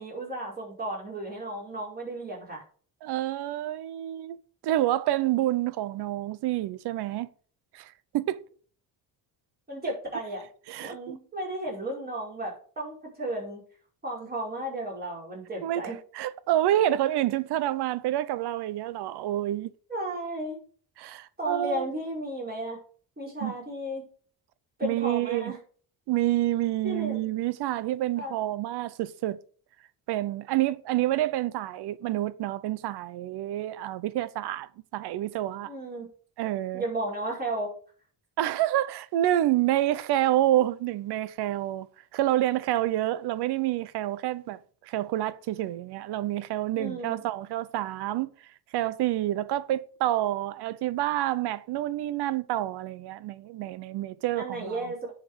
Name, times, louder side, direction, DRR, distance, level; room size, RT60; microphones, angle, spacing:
voice 1, 0.0-2.6 9.7-10.4 10.8-13.6 14.0-16.0 19.9-20.6 21.4-22.8 23.2-24.0 24.8-25.6 26.8-27.2 28.2-28.4 35.6-36.0 36.7-37.7 46.8-47.2 54.4-55.1, right 1 dB, 25° right, 5.0 m, -34 dB
voice 2, 3.0-7.3 7.7-8.4 10.7-11.2 15.6-19.7 21.0-21.9 23.4-23.6 24.8-25.5 26.1-29.4 30.1-35.7 36.4-36.8 38.4-41.9 42.1-48.3 48.7-54.9, right 14 dB, 85° right, 0.7 m, -28 dB
10.0 x 5.1 x 5.2 m
cardioid pair, 135°, 39 cm